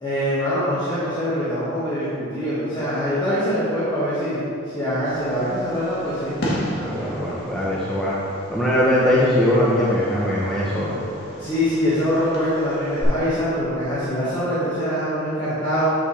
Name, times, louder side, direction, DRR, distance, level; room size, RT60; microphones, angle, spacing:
voice 1, 0.0-4.4 4.7-6.3 11.4-15.9, equal, 20° left, -13 dB, 1.6 m, -23 dB
Fireworks, 5.0-13.0, equal, 55° left, 1.7 m, -34 dB
voice 2, 6.8-8.1 8.5-11.0, left 1 dB, 5° left, -8 dB, 0.8 m, -21 dB
8.3 x 6.5 x 3.3 m, 2.5 s
head